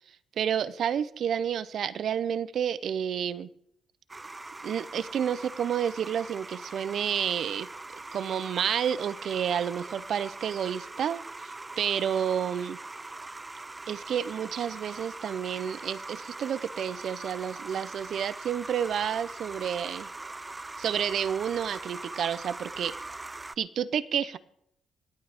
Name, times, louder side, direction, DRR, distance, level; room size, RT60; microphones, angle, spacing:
voice 1, 0.4-3.5 4.6-7.7 8.1-11.2 11.8-12.8 13.9-20.1 20.8-23.0 23.6-24.4, right 8 dB, 65° right, 17 dB, 0.6 m, -30 dB
sound 1, 4.1-23.6, right 2 dB, 20° right, 0.4 m, -42 dB
26.0 x 8.8 x 3.5 m, 0.75 s
cardioid pair, 90°, 0 cm